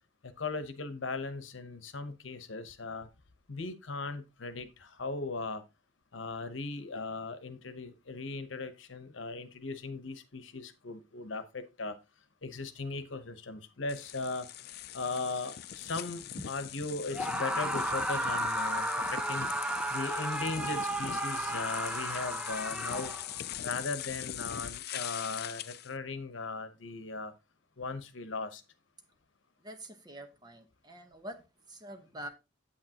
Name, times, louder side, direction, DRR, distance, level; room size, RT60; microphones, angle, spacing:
voice 1, 0.4-3.1 3.5-5.6 6.1-11.9 12.4-14.5 14.9-19.5 19.9-23.1 23.6-27.3 27.8-28.6, left 3 dB, 80° left, 1.0 m, -38 dB
sound 1, 13.9-25.9, left 10 dB, 55° left, 0.4 m, -42 dB
Screaming, 17.1-23.4, right 1 dB, 5° right, 0.6 m, -33 dB
voice 2, 29.6-32.3, right 1 dB, 20° right, 1.1 m, -46 dB
8.6 x 8.3 x 2.9 m
head